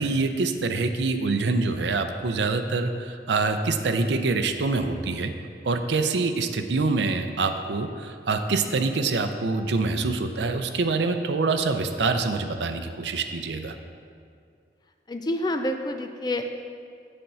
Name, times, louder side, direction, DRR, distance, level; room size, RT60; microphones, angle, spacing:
voice 1, 0.0-5.3 5.6-13.8, right 3 dB, 85° right, 7 dB, 0.5 m, -25 dB
voice 2, 15.1-16.5, left 1 dB, 25° left, 6 dB, 0.4 m, -28 dB
7.8 x 4.4 x 6.8 m, 2.3 s
head